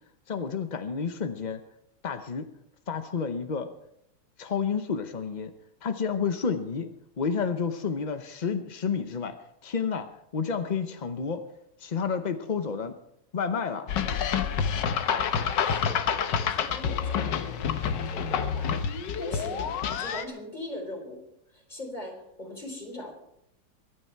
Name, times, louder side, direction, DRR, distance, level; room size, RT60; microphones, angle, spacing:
voice 1, 0.3-1.6 2.0-2.5 2.9-3.7 4.4-5.5 5.8-6.9 7.2-9.3 9.6-10.1 10.3-11.4 11.8-12.9 13.3-13.9, left 6 dB, 50° left, 8 dB, 0.5 m, -30 dB
sound 1, 13.9-20.2, left 7 dB, 90° left, 1.6 m, -28 dB
voice 2, 15.5-16.0 16.3-18.8 19.2-21.2 21.5-23.1, left 1 dB, 25° left, 1 dB, 4.0 m, -40 dB
23.0 x 9.7 x 4.6 m, 0.77 s
omnidirectional pair, 1.9 m